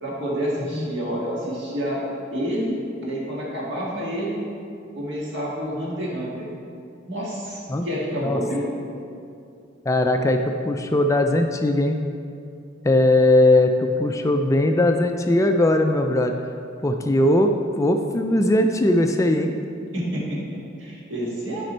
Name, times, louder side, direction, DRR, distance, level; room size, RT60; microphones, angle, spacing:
voice 1, 0.0-2.0 2.3-4.4 4.9-6.5 7.0-8.7 19.9-21.7, equal, 65° right, -5 dB, 2.0 m, -28 dB
voice 2, 9.9-12.0 12.8-16.3 16.8-19.5, left 1 dB, 15° left, 5 dB, 0.3 m, -19 dB
9.1 x 5.1 x 4.4 m, 2.5 s
head